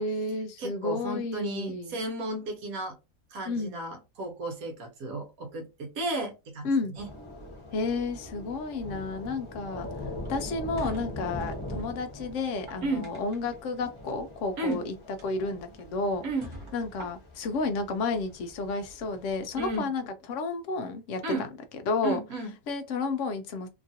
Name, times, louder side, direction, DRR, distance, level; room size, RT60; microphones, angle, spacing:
voice 1, 0.0-2.0 3.5-3.7 6.6-6.9 7.7-9.9 10.3-14.9 15.2-16.2 16.7-21.2 21.9-22.2 22.7-23.7, left 3 dB, 65° left, 0.7 m, -31 dB
voice 2, 0.6-3.0 3.3-7.1 12.8-13.1 14.6-14.8 16.2-16.5 19.6-19.9 21.2-21.5 22.0-22.5, right 2 dB, 70° right, 1.1 m, -33 dB
Thunder / Rain, 6.9-19.8, left 1 dB, 25° left, 0.8 m, -42 dB
sound 1, 10.2-11.9 12.5-13.6 14.5-14.8 15.2-15.3 15.8-15.9 16.4-17.5, equal, 30° right, 0.5 m, -46 dB
2.9 x 2.4 x 2.7 m
omnidirectional pair, 1.7 m